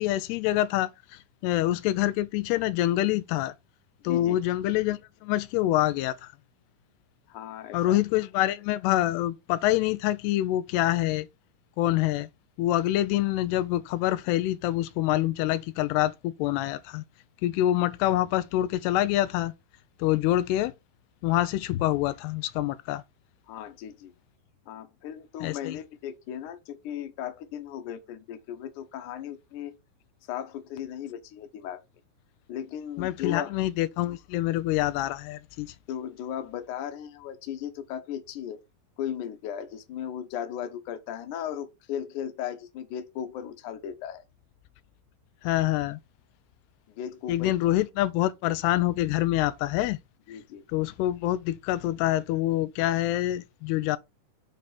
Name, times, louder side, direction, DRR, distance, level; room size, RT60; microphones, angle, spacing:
voice 1, 0.0-3.5 4.0-6.3 7.7-11.3 11.8-12.3 12.6-17.0 17.4-19.5 20.0-20.7 21.2-23.0 25.4-25.8 33.0-35.7 45.4-46.0 47.3-50.0 50.7-54.0, left 14 dB, 85° left, 2.7 m, -26 dB
voice 2, 4.1-4.4 7.3-8.0 23.5-24.1 24.7-29.8 30.3-31.8 32.5-33.5 35.9-38.6 39.0-44.2 46.9-47.5 50.3-50.6, left 9 dB, 65° left, 2.2 m, -36 dB
7.4 x 3.9 x 5.8 m
omnidirectional pair, 4.6 m